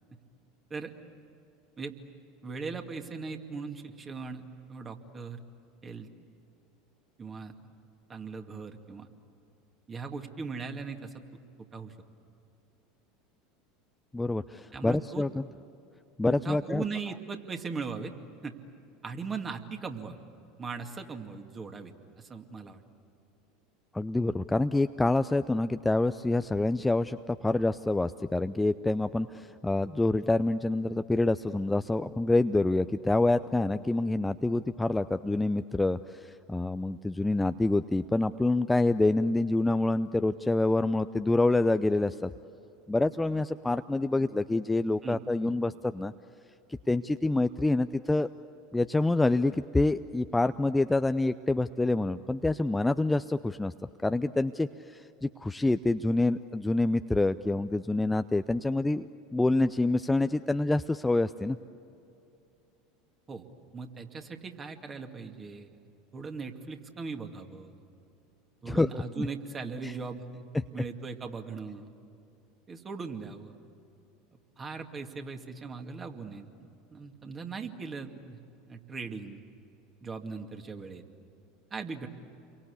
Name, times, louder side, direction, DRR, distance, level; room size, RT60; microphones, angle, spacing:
voice 1, 2.4-5.4 5.8-6.1 7.2-7.5 8.1-9.1 9.9-11.2 11.7-11.9 14.7-15.2 16.2-18.1 18.4-18.6 19.0-20.2 20.6-22.8 45.0-45.5 63.3-63.4 63.7-65.8 66.1-67.8 68.6-70.5 70.7-71.9 72.7-73.6 74.6-76.5 76.9-78.4 78.7-79.4 80.0-81.0 81.7-82.1, right 4 dB, 25° right, 5 dB, 2.3 m, -39 dB
voice 2, 14.1-15.4 16.2-16.8 23.9-42.3 42.9-46.1 46.9-48.3 48.7-53.7 54.0-61.6 68.7-69.3 69.8-69.9, left 2 dB, 10° left, 10 dB, 0.6 m, -27 dB
29.0 x 23.5 x 8.4 m, 2.7 s
figure-of-eight pair, 75°, 0 cm